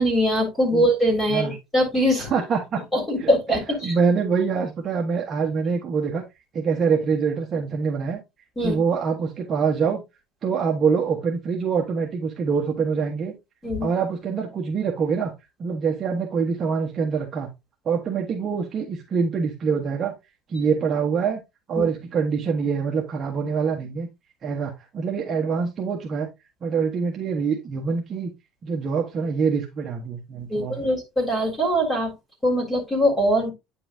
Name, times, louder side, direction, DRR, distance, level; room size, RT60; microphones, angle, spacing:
voice 1, 0.0-2.3 2.9-3.9 8.6-8.8 13.6-13.9 21.8-21.9 30.5-32.1 32.4-33.5, equal, 10° left, 0 dB, 3.5 m, -22 dB
voice 2, 2.2-2.8 3.2-3.3 3.8-6.2 6.5-8.2 8.6-10.0 10.4-13.3 13.8-15.3 15.6-17.5 17.8-20.1 20.5-21.4 21.7-24.1 24.4-26.3 26.6-28.3 28.6-30.9, right 5 dB, 25° right, 0 dB, 1.1 m, -25 dB
9.1 x 5.4 x 2.6 m, 0.22 s
cardioid pair, 165°, 0 cm